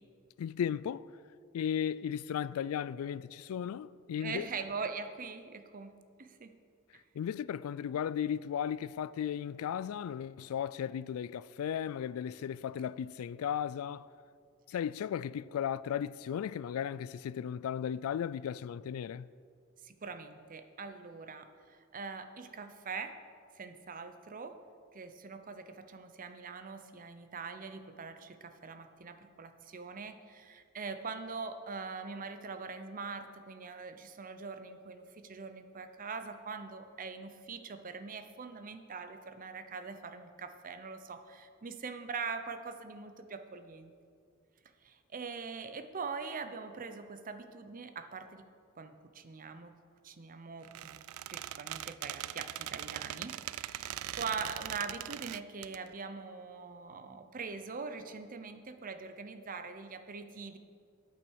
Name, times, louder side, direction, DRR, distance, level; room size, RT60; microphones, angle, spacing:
voice 1, 0.4-1.1 1.5-4.5 7.1-14.1 14.7-19.3, left 8 dB, 85° left, 0.3 m, -35 dB
voice 2, 4.2-6.5 19.8-23.2 23.5-24.6 24.9-43.9 44.8-48.5 48.8-49.8 50.0-51.0 51.3-60.6, right 5 dB, 40° right, 0.7 m, -43 dB
Squeak, 50.6-55.8, right 13 dB, 85° right, 0.3 m, -41 dB
8.8 x 8.7 x 6.3 m
head